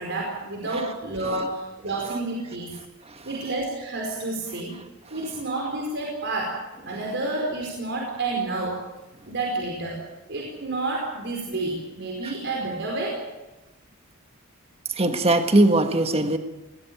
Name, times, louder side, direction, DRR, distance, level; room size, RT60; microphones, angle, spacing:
voice 1, 0.0-2.8 3.2-4.7 5.1-6.6 6.8-8.9 9.3-10.0 10.3-13.2, right 2 dB, 55° right, -1 dB, 4.8 m, -29 dB
voice 2, 14.9-16.4, right 2 dB, 30° right, 7 dB, 1.6 m, -20 dB
20.5 x 18.5 x 9.3 m, 1.1 s
head